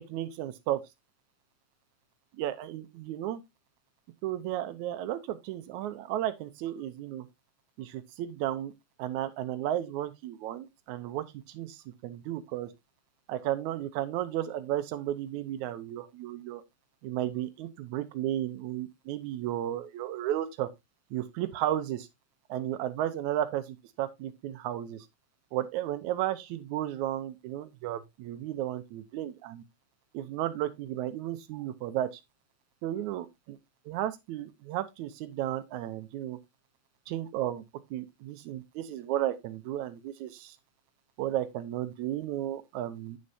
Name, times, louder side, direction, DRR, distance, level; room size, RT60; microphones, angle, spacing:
voice 1, 0.1-0.8 2.4-3.4 4.2-7.3 7.8-8.7 9.0-12.7 13.3-16.6 17.0-20.7 21.1-22.1 22.5-25.1 25.5-29.6 30.1-32.1 32.8-33.6 33.9-36.4 37.1-37.6 37.9-40.6 41.2-43.2, right 12 dB, 80° right, 2.1 m, -33 dB
8.9 x 6.4 x 2.7 m
omnidirectional pair, 3.4 m